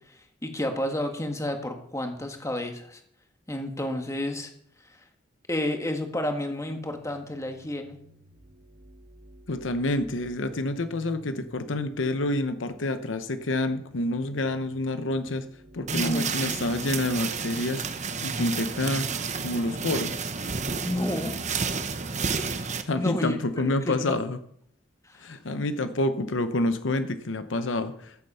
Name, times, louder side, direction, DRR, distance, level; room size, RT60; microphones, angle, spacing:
voice 1, 0.4-3.0 3.5-4.5 5.5-8.0 15.9-16.3 20.8-21.3 22.9-23.4 23.6-24.0 25.1-25.2, left 1 dB, 15° left, 5 dB, 1.6 m, -30 dB
sound 1, 6.6-20.3, equal, 90° right, 2.7 m, -52 dB
voice 2, 9.5-15.5 15.7-17.9 18.2-19.1 19.4-20.2 22.9-24.4 25.2-28.2, left 2 dB, 75° left, 10 dB, 0.8 m, -28 dB
sound 2, 15.9-22.8, right 5 dB, 40° right, 1.0 m, -31 dB
14.0 x 7.7 x 5.6 m, 0.69 s
head